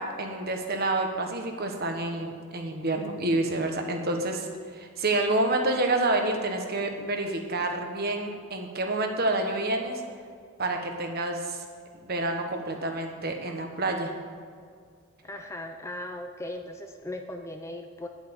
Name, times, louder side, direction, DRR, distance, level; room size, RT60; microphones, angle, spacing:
voice 1, 0.0-4.5 4.7-10.0 10.6-11.6 12.0-14.1, right 2 dB, 45° right, 4 dB, 1.3 m, -28 dB
voice 2, 15.2-18.1, left 1 dB, 10° left, 5 dB, 0.5 m, -38 dB
10.5 x 8.2 x 7.0 m, 2.1 s
head